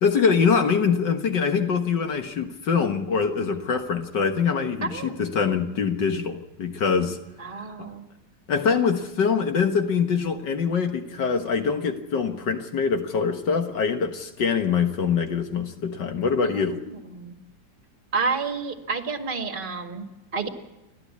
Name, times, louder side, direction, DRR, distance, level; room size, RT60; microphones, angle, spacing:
voice 1, 0.0-7.2 7.8-7.9 8.5-16.8, left 6 dB, 70° left, 6 dB, 2.1 m, -24 dB
voice 2, 4.8-5.3 7.4-8.1 16.4-17.3 18.1-20.5, right 4 dB, 30° right, 5 dB, 2.0 m, -30 dB
29.5 x 12.0 x 8.5 m, 0.98 s
omnidirectional pair, 2.0 m